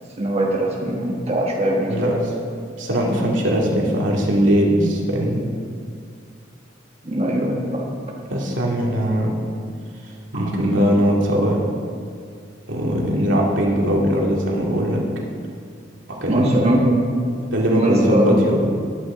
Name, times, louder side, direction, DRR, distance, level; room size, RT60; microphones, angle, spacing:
voice 1, 0.2-2.1 7.0-7.9 10.3-10.4 16.3-17.0 17.7-18.5, right 1 dB, 35° right, -2 dB, 1.4 m, -21 dB
voice 2, 2.8-5.4 8.3-9.3 10.3-11.6 12.7-15.0 16.1-16.7 17.5-18.6, equal, 75° right, -2 dB, 2.3 m, -20 dB
20.0 x 8.5 x 3.8 m, 2.3 s
head